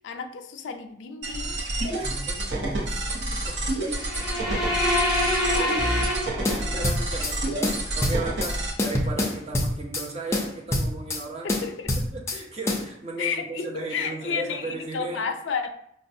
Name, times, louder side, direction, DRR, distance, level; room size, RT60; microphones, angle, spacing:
voice 1, 0.0-1.6 4.1-5.1 5.4-6.5 7.1-7.2 11.4-11.9 13.2-15.7, left 6 dB, 75° left, 6 dB, 0.4 m, -33 dB
sound 1, 1.2-8.7, right 1 dB, 70° right, 0.8 m, -29 dB
voice 2, 2.0-3.9 4.2-4.5 5.4-5.8 6.5-11.6 12.1-15.3, right 2 dB, 35° right, -1 dB, 0.7 m, -36 dB
sound 2, 4.0-7.0, left 1 dB, 5° right, 1.0 m, -26 dB
sound 3, 6.4-7.3 7.6-8.5 8.8-10.1 10.3-11.2 11.5-12.4 12.7-12.8, left 1 dB, 15° left, 0.4 m, -26 dB
5.2 x 2.2 x 2.6 m, 0.73 s
head